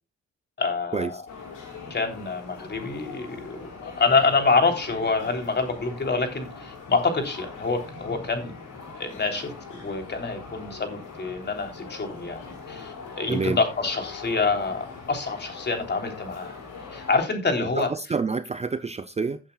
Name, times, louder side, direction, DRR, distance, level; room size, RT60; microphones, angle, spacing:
voice 1, 0.6-1.2 1.9-8.5 9.0-16.6 16.9-17.9, left 4 dB, 35° left, 3.4 m, -26 dB
sound 1, 1.3-17.2, left 4 dB, 85° left, 5.8 m, -41 dB
voice 2, 17.8-19.4, right 4 dB, 20° right, 0.6 m, -28 dB
16.0 x 8.7 x 2.3 m
cardioid pair, 90°, 30 cm